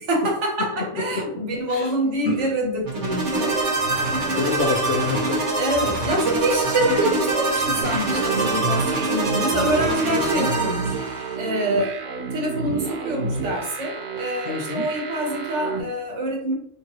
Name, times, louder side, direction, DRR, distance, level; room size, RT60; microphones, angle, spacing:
voice 1, 0.1-4.0 5.5-11.0 11.4-16.5, right 1 dB, 50° right, 0 dB, 1.3 m, -26 dB
voice 2, 0.6-1.9 2.2-2.5 4.0-5.4 10.1-10.5 14.5-14.9, left 4 dB, 75° left, 0 dB, 0.5 m, -28 dB
sound 1, 2.8-11.3, right 2 dB, 35° right, 1.0 m, -24 dB
sound 2, 7.8-15.8, right 4 dB, 75° right, 1.3 m, -30 dB
3.7 x 3.1 x 2.9 m, 0.68 s
omnidirectional pair, 1.6 m